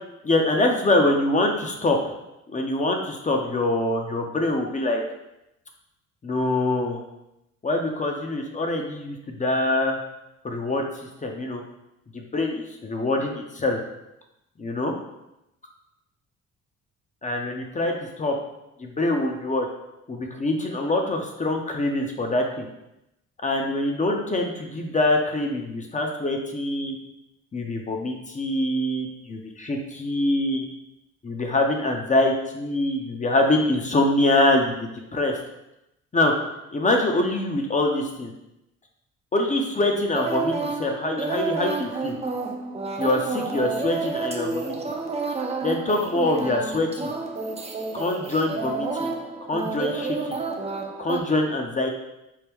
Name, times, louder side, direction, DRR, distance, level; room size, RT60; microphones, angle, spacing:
voice 1, 0.2-2.0 2.5-5.0 6.2-7.0 7.6-10.0 10.4-10.8 11.2-11.6 12.1-13.8 14.6-14.9 17.2-18.4 18.8-19.7 20.1-22.7 23.4-27.0 27.5-30.7 31.2-35.4 36.1-36.3 36.7-38.3 39.3-42.2 43.0-44.7 45.6-47.1 47.9-49.1 49.5-50.4 51.0-51.9, left 2 dB, 25° left, 2 dB, 0.6 m, -24 dB
sound 1, 40.1-51.2, right 4 dB, 20° right, 0.5 m, -30 dB
4.6 x 2.1 x 3.4 m, 0.88 s
cardioid pair, 90°, 30 cm